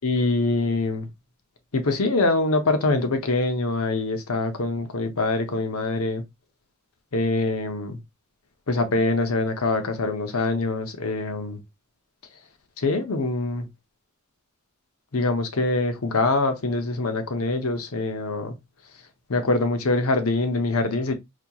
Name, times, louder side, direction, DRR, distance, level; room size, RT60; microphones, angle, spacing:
voice 1, 0.0-1.1 1.7-6.2 7.1-8.0 8.7-11.6 12.8-13.7 15.1-18.6 19.3-21.1, left 2 dB, 80° left, 0.8 m, -24 dB
4.2 x 2.9 x 2.3 m
head